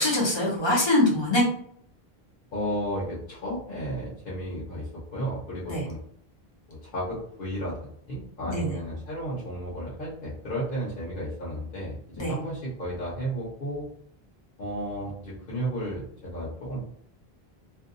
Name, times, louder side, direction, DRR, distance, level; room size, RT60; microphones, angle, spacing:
voice 1, 0.0-1.4 5.7-5.8 8.5-8.7 12.2-12.3, left 1 dB, 30° left, -4 dB, 0.6 m, -23 dB
voice 2, 2.5-6.0 6.7-13.9 14.6-16.8, right 1 dB, 60° left, -7 dB, 1.0 m, -33 dB
2.6 x 2.2 x 2.6 m, 0.66 s
omnidirectional pair, 1.0 m